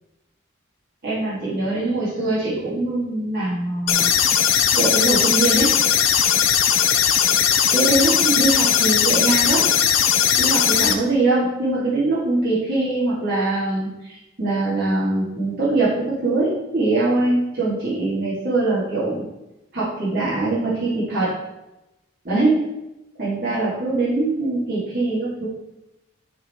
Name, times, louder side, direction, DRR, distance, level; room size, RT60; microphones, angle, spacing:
voice 1, 1.0-4.1 4.7-5.7 7.7-9.7 10.4-19.3 19.7-21.3 22.2-22.6 23.2-25.5, right 2 dB, 50° right, -10 dB, 2.4 m, -22 dB
sound 1, 3.9-10.9, left 8 dB, 85° left, 0.7 m, -18 dB
11.0 x 3.8 x 4.4 m, 0.95 s
head